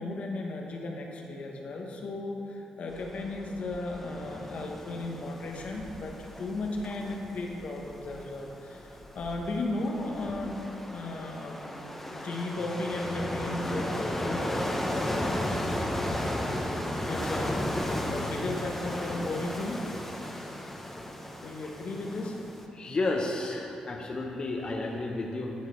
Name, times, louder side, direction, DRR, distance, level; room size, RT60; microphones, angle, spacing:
voice 1, 0.0-10.5 10.9-11.6 12.2-19.8 21.4-22.4, left 2 dB, 65° left, 1 dB, 1.1 m, -36 dB
sound 1, 2.9-22.6, left 1 dB, 10° left, 0.9 m, -35 dB
voice 2, 22.7-25.5, left 2 dB, 40° left, 0 dB, 0.8 m, -31 dB
11.5 x 4.8 x 4.5 m, 2.9 s
cardioid pair, 75°, 2 cm